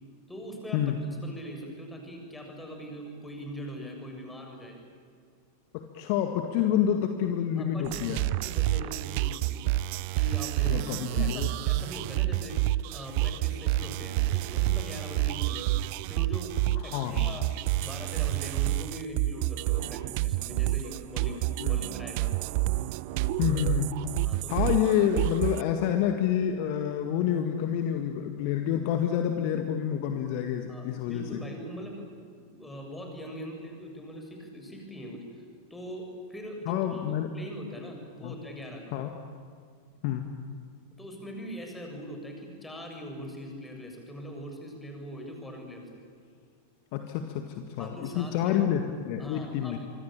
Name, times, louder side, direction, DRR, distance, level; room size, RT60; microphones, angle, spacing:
voice 1, 0.3-4.8 7.6-8.1 8.4-9.7 10.1-15.8 16.1-22.3 24.2-24.7 30.7-32.0 32.4-35.4 35.7-37.0 37.3-38.9 41.0-46.0 47.8-48.6 49.2-49.8, equal, 10° left, 2 dB, 7.1 m, -41 dB
voice 2, 5.7-8.2 10.7-11.5 16.9-17.3 21.6-21.8 23.4-23.9 24.5-31.4 36.7-37.3 38.2-38.3 38.9-39.1 40.0-40.3 46.9-49.8, left 10 dB, 45° left, 6 dB, 1.9 m, -28 dB
sound 1, 7.8-25.6, right 16 dB, 45° right, 0.6 m, -29 dB
26.5 x 24.5 x 8.8 m, 2.2 s
figure-of-eight pair, 90°, 0 cm